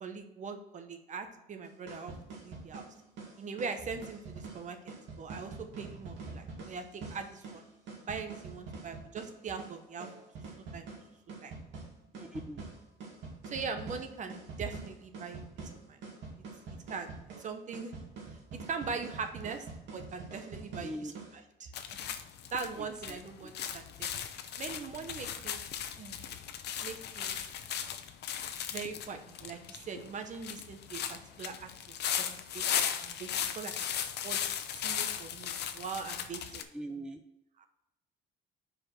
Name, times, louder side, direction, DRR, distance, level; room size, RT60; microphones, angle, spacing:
voice 1, 0.0-2.9 3.4-7.6 8.0-10.1 10.7-10.9 11.4-11.5 13.5-16.0 16.9-17.9 18.7-19.7 19.9-21.7 22.5-24.2 24.6-25.6 26.0-26.4 26.8-27.4 28.7-31.7 32.2-34.5 34.8-36.6 37.6-37.7, right 5 dB, 40° right, 8 dB, 0.9 m, -41 dB
sound 1, 1.6-21.4, right 4 dB, 65° right, 2.2 m, -46 dB
voice 2, 12.1-12.6 20.8-21.1 23.1-23.5 36.7-37.2, equal, 5° right, 5 dB, 0.4 m, -41 dB
sound 2, 21.7-36.6, left 9 dB, 60° left, 0.7 m, -37 dB
5.1 x 4.7 x 6.0 m, 0.86 s
cardioid pair, 135°, 20 cm